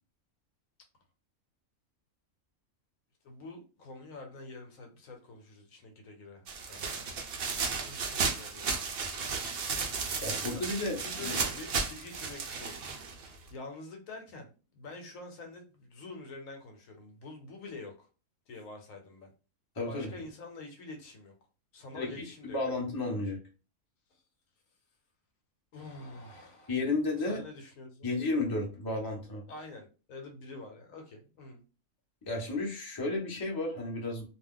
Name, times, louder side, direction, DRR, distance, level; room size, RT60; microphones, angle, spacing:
voice 1, 3.2-7.1 7.8-8.8 10.5-10.6 11.0-12.8 13.2-18.1 18.5-19.3 19.9-21.4 21.7-22.6 25.7-26.7 27.3-28.1 29.5-31.6, left 3 dB, 70° left, 3 dB, 1.1 m, -47 dB
sound 1, 6.5-13.5, right 5 dB, 65° right, 0.6 m, -34 dB
voice 2, 10.2-11.3 19.8-20.1 21.9-23.4 26.7-27.4 28.0-29.4 32.2-34.3, left 2 dB, 20° left, -2 dB, 0.6 m, -33 dB
2.5 x 2.3 x 3.6 m, 0.34 s
omnidirectional pair, 1.5 m